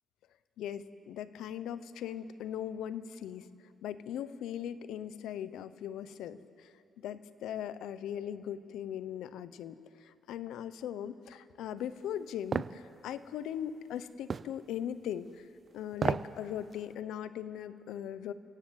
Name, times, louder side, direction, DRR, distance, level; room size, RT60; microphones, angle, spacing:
voice 1, 0.6-3.5 3.8-15.5 15.7-18.3, left 10 dB, 85° left, 14 dB, 0.9 m, -39 dB
sound 1, 12.5-12.8 14.3-14.5 15.9-16.3 16.7-16.8, right 5 dB, 40° right, 0.6 m, -31 dB
29.5 x 17.5 x 8.1 m, 2.6 s
cardioid pair, 90°, 0 cm